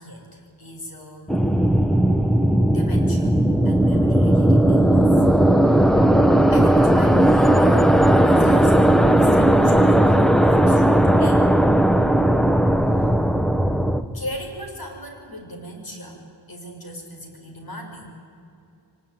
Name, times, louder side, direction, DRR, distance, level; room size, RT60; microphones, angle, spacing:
voice 1, 0.0-1.3 2.7-3.4 3.6-5.3 5.6-5.8 6.5-11.5 12.9-13.1 14.1-18.1, equal, 55° left, 2 dB, 5.7 m, -38 dB
sound 1, 1.3-14.0, right 1 dB, ahead, 1.0 m, -16 dB
24.0 x 19.0 x 9.6 m, 2.6 s
wide cardioid pair, 90°, 43 cm